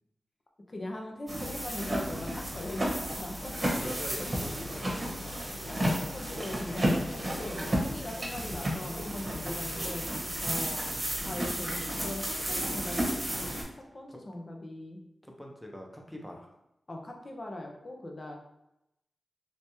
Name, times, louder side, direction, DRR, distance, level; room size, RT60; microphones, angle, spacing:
voice 1, 0.7-3.8 5.7-10.0 10.4-13.5 13.9-15.0 16.9-18.4, left 1 dB, 40° left, 1 dB, 0.7 m, -40 dB
sound 1, 1.3-13.6, equal, 30° right, 1.0 m, -32 dB
voice 2, 2.1-2.4 3.7-5.3 9.7-10.4 14.1-14.2 15.2-16.5, equal, 5° left, 0 dB, 0.8 m, -44 dB
3.3 x 3.1 x 2.8 m, 0.86 s
cardioid pair, 70°, 0 cm